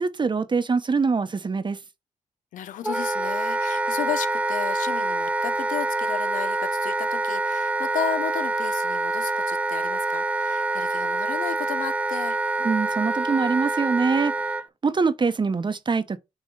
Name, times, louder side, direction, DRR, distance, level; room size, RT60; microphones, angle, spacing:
voice 1, 0.0-1.8 12.6-14.3 14.8-16.2, right 4 dB, 35° right, 0.8 m, -24 dB
voice 2, 2.5-12.5, left 9 dB, 85° left, 0.6 m, -34 dB
Wind instrument woodwind instrument, 2.8-14.7, right 2 dB, 10° right, 0.4 m, -26 dB
6.4 x 3.0 x 5.1 m
cardioid pair, 65°, 13 cm